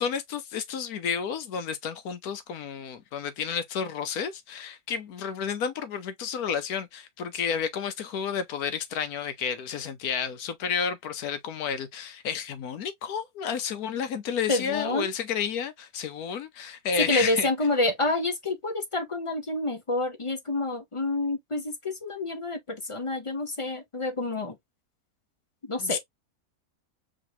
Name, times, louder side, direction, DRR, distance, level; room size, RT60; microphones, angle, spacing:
voice 1, 0.0-17.5 25.8-26.0, left 7 dB, 80° left, 1.3 m, -31 dB
voice 2, 14.5-15.1 17.0-24.6 25.6-26.0, left 2 dB, 35° left, 0.5 m, -28 dB
5.1 x 3.1 x 2.8 m
omnidirectional pair, 1.6 m